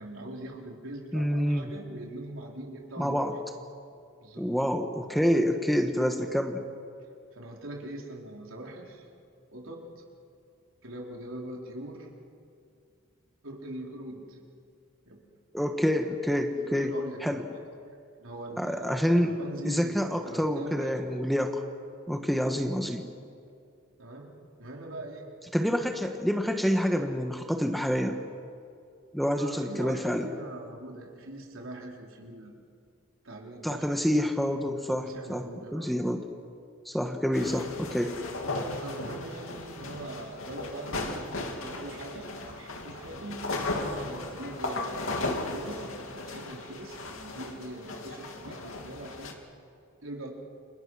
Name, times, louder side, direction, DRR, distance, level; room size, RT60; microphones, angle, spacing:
voice 1, 0.0-3.4 4.2-4.5 7.3-9.1 9.5-10.0 10.8-12.1 13.4-14.4 15.1-15.2 16.5-17.5 18.2-18.9 19.2-21.1 24.0-24.3 24.6-25.3 25.9-26.0 29.3-32.5 33.2-33.9 35.0-35.9 38.8-49.4 50.0-50.3, right 1 dB, 70° right, 0 dB, 3.9 m, -42 dB
voice 2, 1.1-1.7 3.0-3.3 4.4-6.6 15.5-16.9 17.2-17.4 18.6-19.3 19.6-21.6 22.1-23.1 25.5-28.2 29.1-30.3 33.6-36.2 36.8-38.1, equal, ahead, 4 dB, 1.2 m, -27 dB
sound 1, 37.3-49.3, left 2 dB, 70° left, 2.8 m, -36 dB
30.0 x 28.0 x 6.3 m, 2.4 s
head